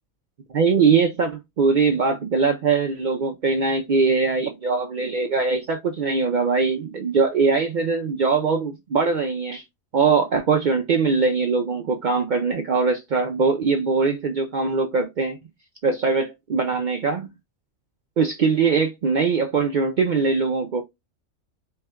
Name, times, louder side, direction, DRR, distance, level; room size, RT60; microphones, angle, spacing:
voice 1, 0.5-9.6 9.9-15.4 15.8-17.3 18.2-20.8, right 4 dB, 80° right, 0.4 m, -21 dB
4.4 x 2.2 x 3.4 m
omnidirectional pair, 1.4 m